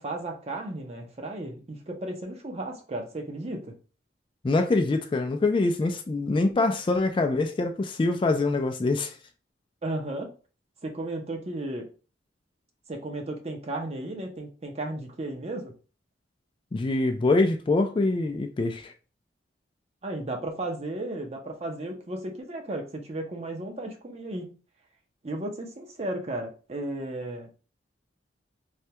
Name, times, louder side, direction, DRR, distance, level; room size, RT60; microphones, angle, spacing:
voice 1, 0.0-3.7 9.8-10.3 10.8-11.9 12.9-15.7 20.0-24.5 25.2-27.6, right 2 dB, 35° right, 0.6 m, -34 dB
voice 2, 4.4-9.2 16.7-18.9, left 2 dB, 30° left, 0.3 m, -24 dB
3.2 x 2.2 x 2.8 m
head